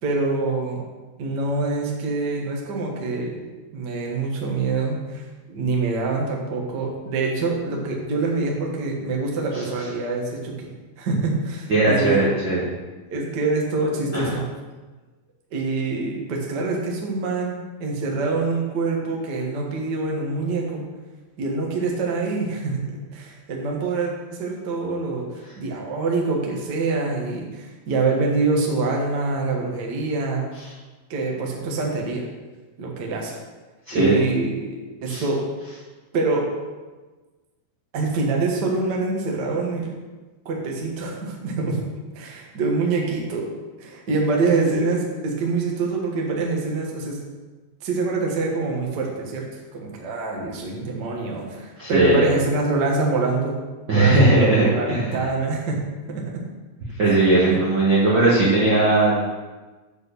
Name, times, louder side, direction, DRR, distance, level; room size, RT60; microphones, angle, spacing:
voice 1, 0.0-0.8 1.2-3.4 3.7-10.7 11.0-12.3 13.1-14.4 15.5-20.8 21.4-25.3 25.6-30.4 31.1-32.3 32.8-33.4 33.9-35.4 36.1-36.5 37.9-39.9 40.4-41.8 42.1-43.5 43.8-47.2 47.8-49.5 49.7-53.6 53.9-55.8 56.1-56.4 57.4-57.6, right 3 dB, 85° right, -1 dB, 0.9 m, -25 dB
voice 2, 11.7-12.7 14.1-14.3 33.9-34.2 35.1-35.2 51.8-52.3 53.9-55.2 57.0-59.3, right 2 dB, 55° right, -7 dB, 1.4 m, -18 dB
9.5 x 4.5 x 6.8 m, 1.3 s
omnidirectional pair, 4.4 m